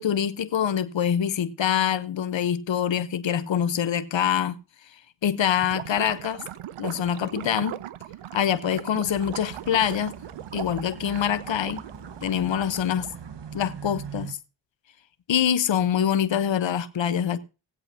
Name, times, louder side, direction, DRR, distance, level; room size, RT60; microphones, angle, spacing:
voice 1, 0.0-4.5 5.2-6.4 6.8-7.8 8.3-10.2 10.5-11.8 12.2-13.1 13.5-14.4 15.3-17.4, left 9 dB, 65° left, 1.0 m, -25 dB
Gurgling / Liquid, 5.5-13.3, right 12 dB, 85° right, 0.7 m, -39 dB
sound 1, 9.1-14.3, right 7 dB, 60° right, 1.5 m, -41 dB
18.5 x 7.9 x 2.8 m
cardioid pair, 40°, 49 cm